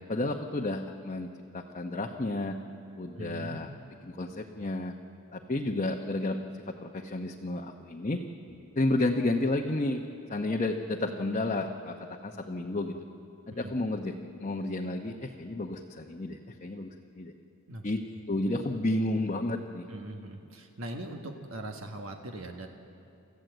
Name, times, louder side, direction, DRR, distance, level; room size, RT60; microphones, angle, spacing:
voice 1, 0.1-2.6 3.0-3.7 4.2-5.0 5.3-6.4 6.7-8.2 8.7-12.9 13.5-14.1 14.4-17.3 17.8-19.8, left 2 dB, 35° left, 0 dB, 0.9 m, -31 dB
voice 2, 3.2-3.6 13.5-13.7 17.7-17.8 19.9-22.7, right 1 dB, 70° right, 3 dB, 1.5 m, -40 dB
28.5 x 14.5 x 7.9 m, 2.7 s
head